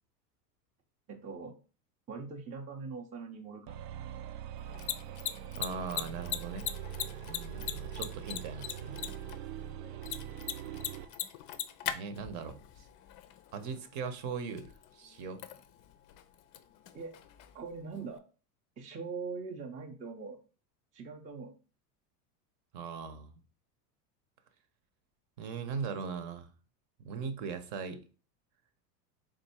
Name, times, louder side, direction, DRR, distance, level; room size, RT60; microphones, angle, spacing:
voice 1, 1.1-1.5 2.1-3.8 7.6-7.7 16.9-17.1 17.5-18.2 18.8-20.4 20.9-21.5, right 4 dB, 15° right, 0.4 m, -42 dB
sound 1, 3.7-11.2, right 10 dB, 75° right, 0.6 m, -43 dB
Mechanisms, 4.6-18.2, left 10 dB, 40° left, 0.4 m, -42 dB
voice 2, 5.6-6.7 7.2-9.1 11.9-12.9 13.5-15.4 22.7-23.3 25.4-26.5 27.0-28.0, right 5 dB, 55° right, 0.8 m, -39 dB
3.5 x 2.6 x 4.2 m
supercardioid pair, 105°, 49 cm